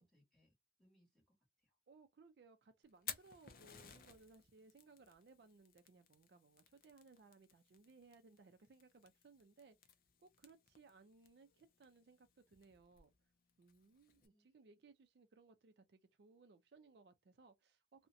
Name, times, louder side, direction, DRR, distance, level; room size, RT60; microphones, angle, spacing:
voice 1, 0.0-1.8 14.1-14.4, equal, ahead, 1.1 m, -76 dB
voice 2, 1.9-9.9 10.2-13.1 13.6-18.1, right 4 dB, 65° right, 0.4 m, -65 dB
Fire, 2.8-14.3, left 9 dB, 50° left, 0.4 m, -57 dB
2.5 x 2.1 x 2.6 m
head